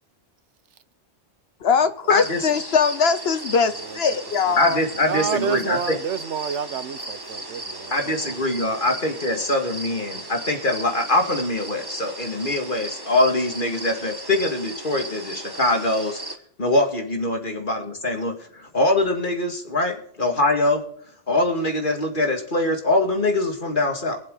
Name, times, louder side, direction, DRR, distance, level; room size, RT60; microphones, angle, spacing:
voice 1, 1.6-4.8, left 5 dB, 65° left, 1.0 m, -21 dB
sound 1, 2.1-16.4, right 2 dB, 20° right, 1.3 m, -36 dB
voice 2, 3.7-4.2 4.5-4.7 5.0-8.4, right 7 dB, 90° right, 1.1 m, -30 dB
voice 3, 4.6-6.0 7.9-16.2 16.6-20.8 21.3-24.2, left 2 dB, 45° left, 2.4 m, -23 dB
22.5 x 7.5 x 3.9 m
omnidirectional pair, 1.1 m